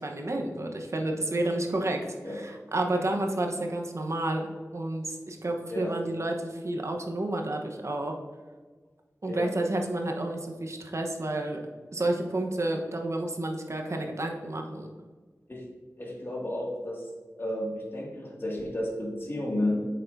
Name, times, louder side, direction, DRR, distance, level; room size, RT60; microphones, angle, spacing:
voice 1, 0.0-2.0 2.2-8.1 9.2-11.6 11.9-14.9, right 1 dB, 55° right, 3 dB, 1.0 m, -30 dB
voice 2, 16.0-17.0 17.4-19.8, left 1 dB, 40° left, -3 dB, 2.2 m, -32 dB
8.5 x 6.6 x 2.7 m, 1.5 s
wide cardioid pair, 75°, 6 cm